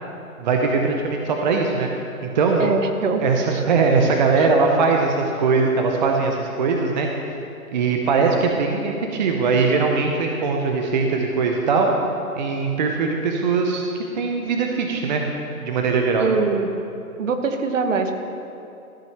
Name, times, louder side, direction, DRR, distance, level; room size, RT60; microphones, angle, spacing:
voice 1, 0.4-1.9 2.2-2.7 3.2-7.1 7.7-11.9 12.4-13.9 14.1-15.3 15.6-16.3, right 4 dB, 30° right, 2 dB, 0.7 m, -20 dB
voice 2, 2.6-3.3 3.5-3.6 4.4-4.5 16.2-16.7 17.2-18.1, right 4 dB, 60° right, 6 dB, 1.2 m, -23 dB
14.0 x 6.1 x 5.9 m, 2.7 s
hypercardioid pair, 145°, 44 cm